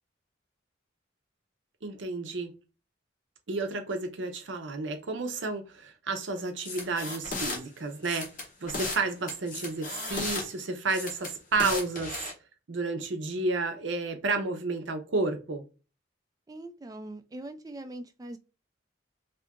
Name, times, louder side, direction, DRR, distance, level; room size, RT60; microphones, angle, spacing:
voice 1, 1.8-2.5 3.5-8.3 8.6-12.3 12.7-15.6, right 3 dB, 75° right, 0.7 m, -31 dB
sound 1, 6.6-7.6 8.0-9.0 9.3-10.4 10.9-12.3, left 3 dB, 45° left, 1.0 m, -35 dB
voice 2, 16.5-18.4, right 1 dB, 20° right, 0.3 m, -42 dB
2.8 x 2.5 x 3.5 m
head